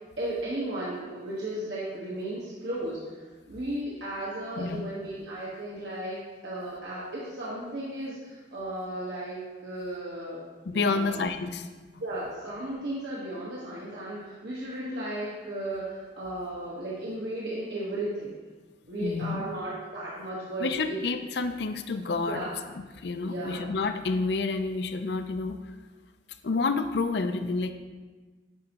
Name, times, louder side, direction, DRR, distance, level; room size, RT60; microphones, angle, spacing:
voice 1, 0.2-6.2 6.4-9.4 9.6-10.4 10.7-11.2 12.0-18.4 18.9-21.0 22.3-22.6 23.2-23.6, right 1 dB, 70° right, -7 dB, 1.2 m, -35 dB
voice 2, 10.7-11.7 19.0-19.5 20.6-22.5 22.7-25.6 26.4-27.7, left 3 dB, 65° left, 9 dB, 0.5 m, -29 dB
9.7 x 5.3 x 2.9 m, 1.3 s
head